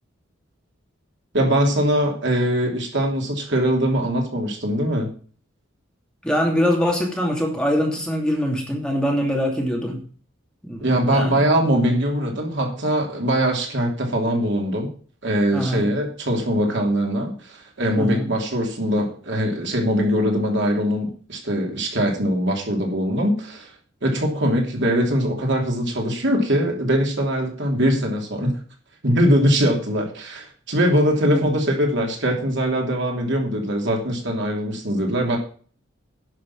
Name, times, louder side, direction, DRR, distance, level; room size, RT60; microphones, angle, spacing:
voice 1, 1.3-5.1 10.8-14.9 15.2-23.7 24.0-28.6 29.0-35.4, equal, 60° right, 1 dB, 3.1 m, -22 dB
voice 2, 6.2-10.0 10.6-11.4 15.5-15.9 18.0-18.3 31.3-31.5, equal, 5° left, 0 dB, 2.8 m, -23 dB
11.0 x 6.7 x 7.2 m, 0.43 s
head